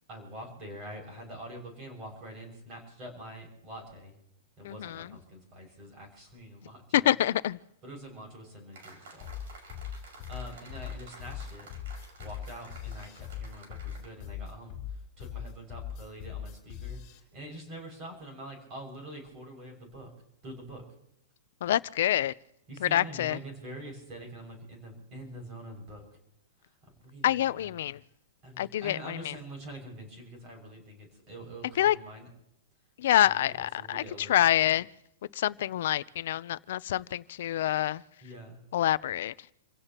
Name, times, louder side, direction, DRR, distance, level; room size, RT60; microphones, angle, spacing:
voice 1, 0.1-4.2 4.6-7.1 7.8-9.3 10.3-11.7 12.2-20.1 20.4-20.8 22.7-26.0 27.0-27.8 28.4-32.3 33.2-34.4 38.2-38.6, right 1 dB, 25° right, 6.4 m, -45 dB
voice 2, 4.6-5.1 6.9-7.6 21.6-22.3 22.8-23.4 27.2-28.0 28.6-29.3 31.8-32.0 33.0-34.9 35.3-38.0 38.7-39.3, left 12 dB, 55° left, 0.6 m, -27 dB
sound 1, 8.7-14.1, right 2 dB, 60° right, 5.8 m, -52 dB
sound 2, 9.2-17.2, left 8 dB, 25° left, 3.4 m, -40 dB
28.5 x 16.5 x 3.0 m
supercardioid pair, 175°, 0 cm